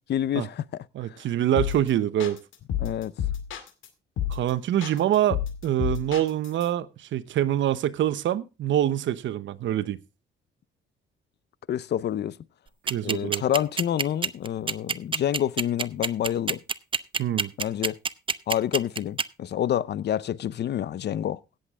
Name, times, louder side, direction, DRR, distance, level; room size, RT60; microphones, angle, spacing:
voice 1, 0.1-1.2 2.8-3.1 11.7-12.4 13.0-16.6 17.6-18.0 18.5-21.4, left 10 dB, 60° left, 0.7 m, -28 dB
voice 2, 0.9-2.4 4.3-10.0 12.9-13.4 17.2-17.5, right 11 dB, 70° right, 0.9 m, -25 dB
sound 1, 1.6-1.9 2.2-3.9 4.2-4.5 4.8-6.6, left 10 dB, 80° left, 2.2 m, -29 dB
sound 2, 12.9-19.2, right 5 dB, 25° right, 0.7 m, -26 dB
16.5 x 8.0 x 3.6 m
cardioid pair, 90°, 20 cm